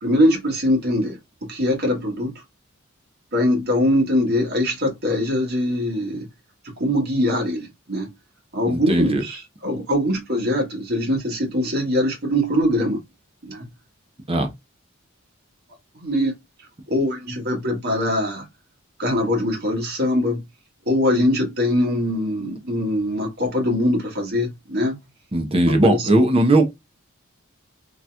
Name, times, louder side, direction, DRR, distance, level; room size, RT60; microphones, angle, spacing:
voice 1, 0.0-2.3 3.3-6.3 6.8-8.1 8.5-13.0 13.5-13.7 16.0-16.3 16.9-18.4 19.0-20.4 20.9-25.0 25.7-26.1, left 1 dB, 50° right, 1.6 m, -22 dB
voice 2, 8.7-9.2 14.3-14.5 25.3-26.7, right 1 dB, 30° right, 0.8 m, -18 dB
3.9 x 2.9 x 2.3 m
head